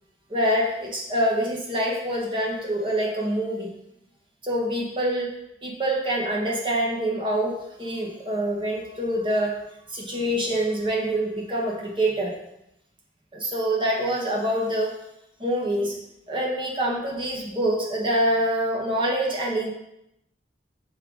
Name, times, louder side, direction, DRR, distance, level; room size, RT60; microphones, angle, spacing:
voice 1, 0.3-3.7 4.4-5.3 5.6-9.5 9.9-12.3 13.3-14.9 15.4-16.0 16.3-19.7, right 1 dB, 25° right, -2 dB, 1.2 m, -25 dB
5.5 x 3.9 x 4.7 m, 0.82 s
head